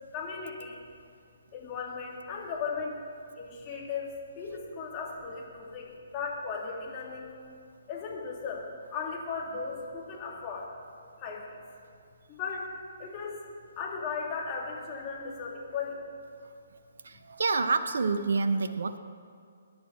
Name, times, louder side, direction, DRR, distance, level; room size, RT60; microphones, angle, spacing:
voice 1, 0.1-0.8 1.5-3.0 3.3-7.3 7.9-10.7 11.2-11.6 12.3-12.7 13.0-13.4 13.8-16.1, left 5 dB, 25° left, -3 dB, 3.1 m, -36 dB
voice 2, 17.0-19.0, right 4 dB, 65° right, 10 dB, 0.9 m, -28 dB
25.5 x 10.5 x 4.3 m, 2.3 s
figure-of-eight pair, 135°, 0 cm